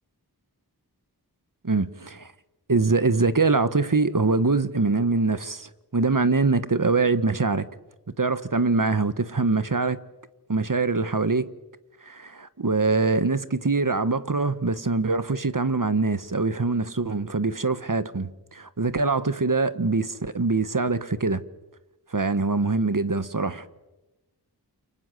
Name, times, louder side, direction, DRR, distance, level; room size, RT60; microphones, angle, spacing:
voice 1, 1.6-2.3 2.7-7.7 8.2-10.0 10.5-11.5 12.0-21.4 22.1-23.6, right 3 dB, 55° right, 1.4 m, -23 dB
28.5 x 24.5 x 7.8 m
wide cardioid pair, 45°, 39 cm